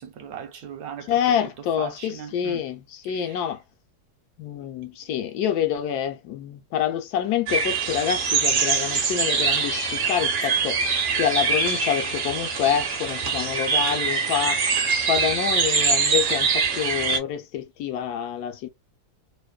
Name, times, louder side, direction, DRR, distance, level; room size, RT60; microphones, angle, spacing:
voice 1, 0.0-1.1 1.8-2.6 3.1-3.4, right 8 dB, 70° right, 1.1 m, -38 dB
voice 2, 1.1-3.6 4.4-10.8 11.2-14.6 15.1-18.7, left 9 dB, 80° left, 1.1 m, -27 dB
sound 1, 7.5-17.2, right 5 dB, 50° right, 0.8 m, -24 dB
2.9 x 2.1 x 2.2 m
omnidirectional pair, 1.7 m